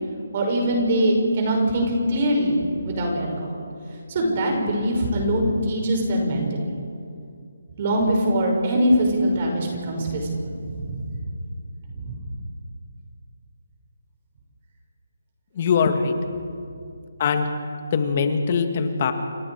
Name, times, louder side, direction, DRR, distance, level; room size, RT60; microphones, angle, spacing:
voice 1, 0.3-2.6 2.8-3.7 4.1-6.8 7.8-11.2 11.9-12.2, equal, 40° right, 1 dB, 5.6 m, -23 dB
voice 2, 15.6-16.1 17.2-17.5 17.9-19.1, left 6 dB, 40° left, 6 dB, 2.1 m, -21 dB
28.0 x 24.0 x 4.8 m, 2.3 s
hypercardioid pair, 160°, 0 cm